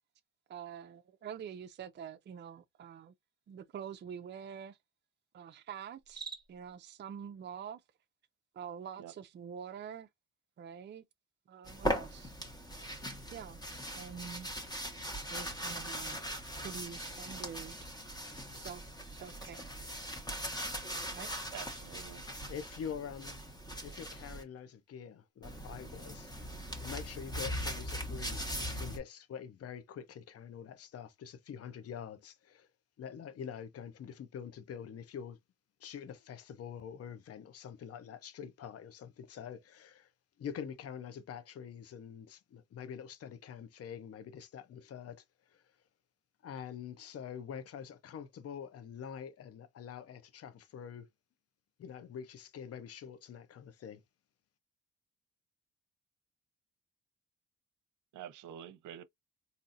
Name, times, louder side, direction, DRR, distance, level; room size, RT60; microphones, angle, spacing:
voice 1, 0.5-3.1 3.5-4.8 5.3-7.8 8.5-10.1 10.6-11.0 11.5-12.3 13.3-13.6 13.9-14.5 15.3-16.2 16.6-17.9 18.5-18.9 19.1-19.7 21.1-21.3, right 8 dB, 35° right, 0.4 m, -46 dB
Cricket, 6.0-6.7, right 5 dB, 15° right, 0.9 m, -46 dB
sound 1, 11.7-24.4 25.4-29.0, equal, 15° left, 1.2 m, -40 dB
voice 2, 21.5-22.2 58.1-59.0, right 10 dB, 75° right, 0.7 m, -47 dB
voice 3, 22.5-23.4 23.8-26.5 26.8-32.7 33.0-35.4 35.8-40.1 40.4-45.6 46.4-51.1 51.8-54.0, left 8 dB, 50° left, 0.7 m, -45 dB
4.1 x 2.7 x 2.5 m
cardioid pair, 90°, 30 cm